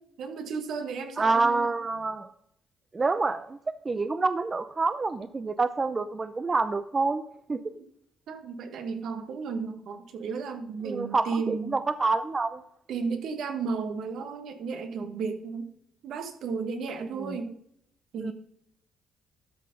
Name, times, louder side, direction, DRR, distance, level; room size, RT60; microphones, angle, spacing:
voice 1, 0.2-1.7 7.7-7.8 8.3-11.8 12.9-15.7 16.0-17.5 18.1-18.3, right 5 dB, 75° right, 7 dB, 1.5 m, -34 dB
voice 2, 1.2-2.3 2.9-3.6 3.8-7.2 7.5-7.6 10.8-12.6 17.0-17.4 18.2-18.3, right 3 dB, 30° right, 12 dB, 0.5 m, -27 dB
13.0 x 4.5 x 5.3 m, 0.74 s
cardioid pair, 85°, 0 cm